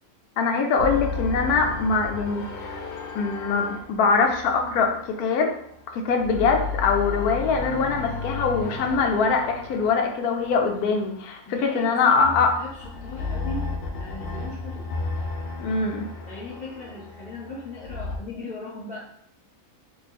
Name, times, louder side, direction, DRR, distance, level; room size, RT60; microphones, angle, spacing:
voice 1, 0.4-2.8 3.1-5.5 5.9-12.5 15.6-16.1, left 5 dB, 85° left, 3 dB, 1.1 m, -23 dB
sound 1, 0.8-5.7 6.1-11.4 12.2-18.2, left 3 dB, 65° left, 0.5 m, -34 dB
voice 2, 11.4-14.9 16.3-19.0, left 2 dB, 5° right, -8 dB, 0.9 m, -38 dB
2.7 x 2.3 x 4.1 m, 0.68 s
omnidirectional pair, 1.6 m